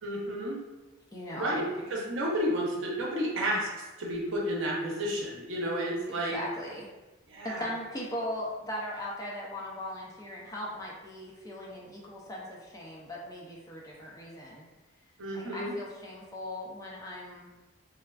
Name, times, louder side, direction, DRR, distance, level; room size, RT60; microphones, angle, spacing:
voice 1, 0.0-0.6 1.3-6.4 7.3-7.7 15.2-15.7, equal, 70° right, -3 dB, 0.7 m, -31 dB
voice 2, 1.1-1.6 6.1-6.9 7.4-14.6 15.3-17.5, left 1 dB, 15° left, -4 dB, 0.4 m, -39 dB
3.4 x 2.3 x 2.3 m, 1.1 s
head